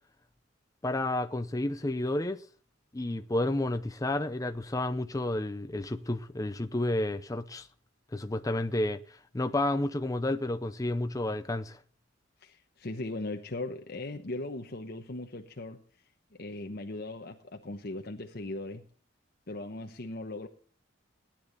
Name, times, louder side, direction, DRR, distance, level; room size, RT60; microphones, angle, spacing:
voice 1, 0.8-2.4 2.9-7.7 8.1-9.0 9.3-11.8, left 1 dB, 15° left, 0.6 m, -31 dB
voice 2, 12.4-15.8 16.3-18.8 19.5-20.5, left 2 dB, 50° left, 1.0 m, -38 dB
17.5 x 10.5 x 4.0 m
head